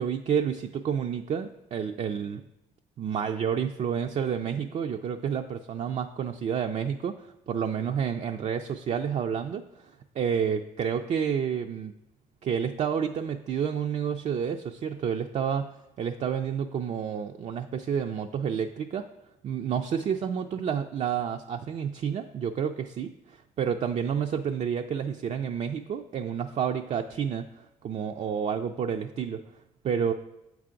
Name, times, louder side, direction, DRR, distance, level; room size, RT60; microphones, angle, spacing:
voice 1, 0.0-2.4 3.0-9.6 10.2-11.9 12.4-15.7 16.0-19.1 19.4-29.4 29.8-30.1, right 7 dB, 45° right, 5 dB, 0.4 m, -29 dB
7.2 x 4.6 x 3.8 m, 0.89 s
supercardioid pair, 60°, 16 cm